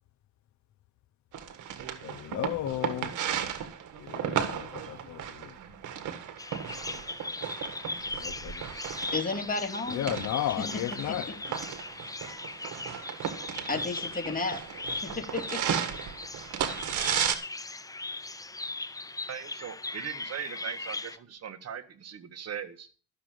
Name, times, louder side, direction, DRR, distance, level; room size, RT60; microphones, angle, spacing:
sound 1, 1.3-17.3, right 9 dB, 80° right, 1.6 m, -35 dB
voice 1, 2.0-3.2 4.0-5.6 6.7-7.0 8.2-8.7 9.9-11.3, left 12 dB, 65° left, 0.7 m, -34 dB
Bird vocalization bird call bird song, 6.4-21.2, left 3 dB, 10° left, 0.6 m, -39 dB
voice 2, 9.1-10.0 13.7-14.6 15.0-15.8, left 3 dB, 30° left, 2.8 m, -32 dB
voice 3, 19.3-22.9, right 8 dB, 55° right, 1.6 m, -39 dB
12.5 x 6.8 x 7.6 m
cardioid pair, 90°, 30 cm